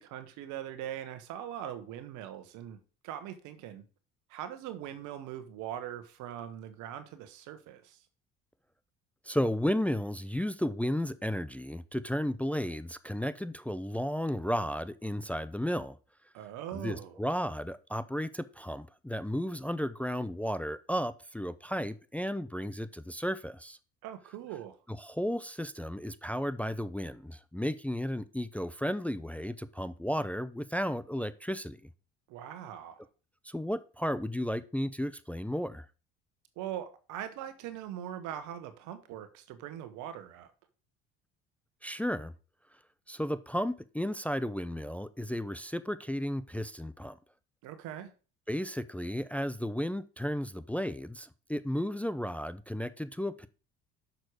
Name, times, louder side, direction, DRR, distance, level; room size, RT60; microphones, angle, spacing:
voice 1, 0.0-3.8 4.3-8.0 16.3-17.2 24.0-24.8 32.3-33.0 36.6-40.5 47.6-48.1, right 11 dB, 75° right, 1.3 m, -41 dB
voice 2, 9.2-16.0 16.7-23.8 25.0-31.8 33.4-35.9 41.8-42.3 43.1-47.2 48.5-53.5, equal, 5° left, 0.5 m, -33 dB
6.6 x 6.1 x 4.8 m
supercardioid pair, 75°, 30 cm